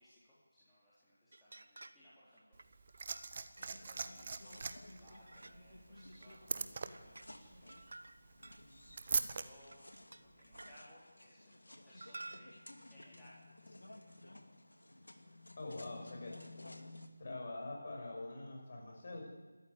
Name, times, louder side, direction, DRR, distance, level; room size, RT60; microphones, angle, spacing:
voice 1, 0.0-2.6 3.6-7.9 9.2-14.2, equal, 5° left, -12 dB, 3.6 m, -63 dB
sound 1, 1.3-2.1 2.4-3.9 4.6-5.7 6.0-6.5 6.8-7.3 7.7-9.1 9.6-10.8 12.0-12.7, right 2 dB, 55° right, 1.1 m, -54 dB
Liquid, 2.5-9.5 10.5-10.6, right 5 dB, 30° right, 1.1 m, -42 dB
sound 2, 3.6-17.1, left 2 dB, 65° left, 2.6 m, -56 dB
voice 2, 15.6-16.4 17.2-19.2, left 2 dB, 35° left, 0 dB, 6.9 m, -44 dB
28.0 x 14.0 x 8.5 m, 1.3 s
figure-of-eight pair, 160°, 0 cm